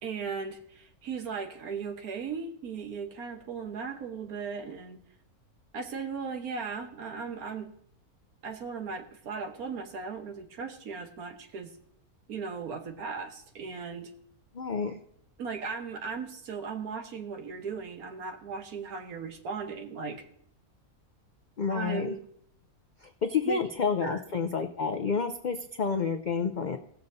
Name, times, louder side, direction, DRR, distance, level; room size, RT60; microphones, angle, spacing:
voice 1, 0.0-5.0 5.7-7.7 8.4-11.7 12.3-14.1 14.8-15.0 15.4-20.2 21.7-22.2 23.4-23.6 24.0-24.2, right 5 dB, 80° right, 5 dB, 1.5 m, -37 dB
voice 2, 14.5-14.9 21.6-22.1 23.0-26.8, left 5 dB, 80° left, 6 dB, 0.4 m, -29 dB
19.0 x 7.0 x 2.6 m, 0.69 s
omnidirectional pair, 1.6 m